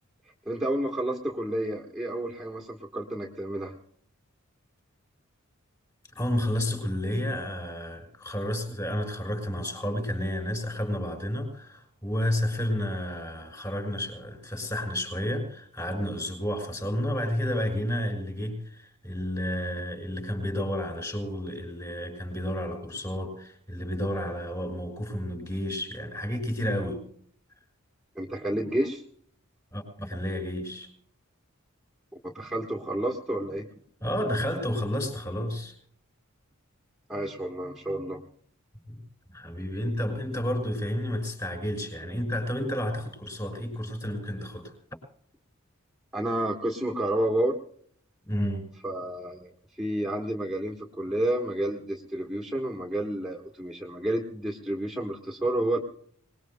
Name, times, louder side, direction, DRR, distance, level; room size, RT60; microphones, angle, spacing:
voice 1, 0.4-3.7 28.1-29.0 32.2-33.7 37.1-38.2 46.1-47.5 48.8-49.5 49.8-55.8, right 1 dB, 5° right, -1 dB, 1.3 m, -30 dB
voice 2, 6.2-27.0 29.7-30.9 34.0-35.7 38.9-39.0 39.3-44.7 48.2-48.7, left 1 dB, 20° left, 5 dB, 5.9 m, -31 dB
25.5 x 20.5 x 2.2 m, 0.62 s
head